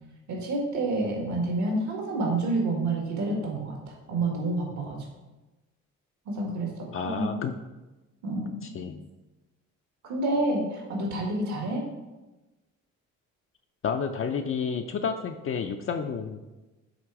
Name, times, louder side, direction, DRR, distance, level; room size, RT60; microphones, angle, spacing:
voice 1, 0.3-5.1 6.3-7.3 8.2-8.7 10.0-11.8, right 2 dB, 70° right, -1 dB, 1.8 m, -29 dB
voice 2, 6.9-7.5 8.6-9.1 13.8-16.4, left 6 dB, 45° left, 5 dB, 0.5 m, -30 dB
7.9 x 3.4 x 4.7 m, 1.1 s
cardioid pair, 90°, 30 cm